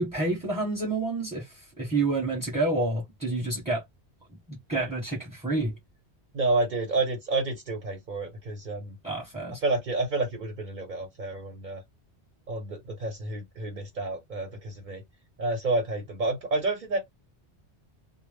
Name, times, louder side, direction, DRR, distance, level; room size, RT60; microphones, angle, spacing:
voice 1, 0.0-3.8 4.5-5.7 9.0-9.6, right 2 dB, 5° right, 0.9 m, -29 dB
voice 2, 6.3-8.9 9.6-11.8 12.5-15.0 15.4-17.0, right 2 dB, 50° right, 0.8 m, -29 dB
2.1 x 2.0 x 3.2 m
omnidirectional pair, 1.1 m